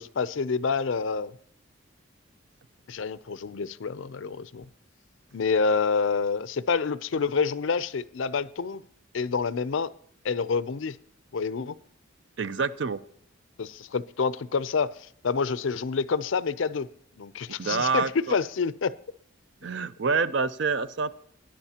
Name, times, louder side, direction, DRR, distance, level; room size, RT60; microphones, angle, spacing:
voice 1, 0.0-1.3 2.9-4.7 5.3-8.8 9.1-9.9 10.2-11.0 11.3-11.8 13.6-14.9 15.2-16.9 17.2-18.9, left 5 dB, 75° left, 0.5 m, -27 dB
voice 2, 12.4-13.0 17.6-18.4 19.6-21.1, right 5 dB, 60° right, 0.5 m, -27 dB
20.5 x 10.5 x 2.9 m
head